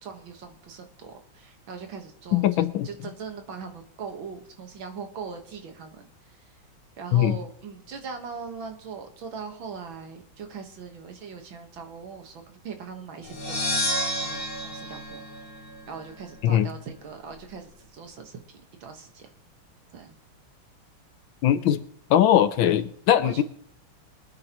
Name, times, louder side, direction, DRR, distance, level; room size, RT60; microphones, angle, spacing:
voice 1, 0.0-6.6 7.0-13.9 14.2-15.6 15.9-18.4 18.8-19.3 19.9-20.2 22.7-23.0 23.2-23.4, right 5 dB, 70° right, 5 dB, 2.1 m, -40 dB
voice 2, 2.3-2.9 7.1-7.4 16.4-16.7 21.4-21.8 22.1-23.4, left 11 dB, 75° left, 12 dB, 1.4 m, -20 dB
sound 1, 13.2-16.1, equal, 50° left, 2.7 m, -30 dB
24.0 x 9.6 x 3.0 m, 0.66 s
omnidirectional pair, 2.3 m